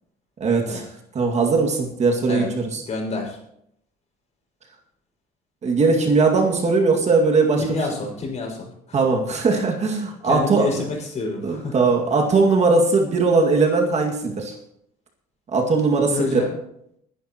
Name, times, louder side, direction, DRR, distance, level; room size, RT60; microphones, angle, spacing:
voice 1, 0.4-0.9 1.1-2.8 5.6-7.6 8.9-10.7 11.4-14.5 15.5-16.4, right 4 dB, 40° right, 1 dB, 2.1 m, -19 dB
voice 2, 2.9-3.4 7.6-9.0 10.2-11.8 16.1-16.6, left 3 dB, 45° left, -1 dB, 5.7 m, -28 dB
21.0 x 11.0 x 3.0 m, 0.73 s
cardioid pair, 110°, 17 cm